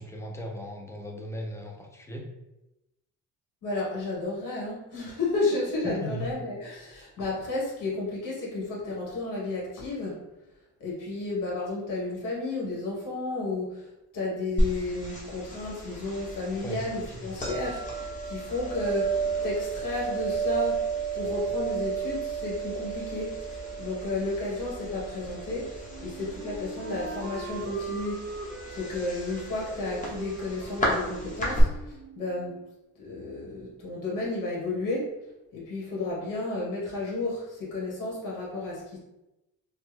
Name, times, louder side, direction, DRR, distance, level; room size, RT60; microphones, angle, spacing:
voice 1, 0.0-2.3 6.0-6.3 16.6-16.8, equal, 10° left, 1 dB, 0.5 m, -37 dB
voice 2, 3.6-10.2 10.8-13.9 14.1-19.2 19.4-20.8 21.1-28.3 28.7-32.6 33.0-35.1 35.5-39.0, left 2 dB, 75° left, -5 dB, 1.4 m, -32 dB
sound 1, 14.6-31.6, right 3 dB, 25° left, 0.9 m, -33 dB
Wind instrument woodwind instrument, 25.9-32.7, right 4 dB, 40° right, 0.5 m, -41 dB
3.3 x 2.1 x 3.2 m, 0.94 s
cardioid pair, 125°, 32 cm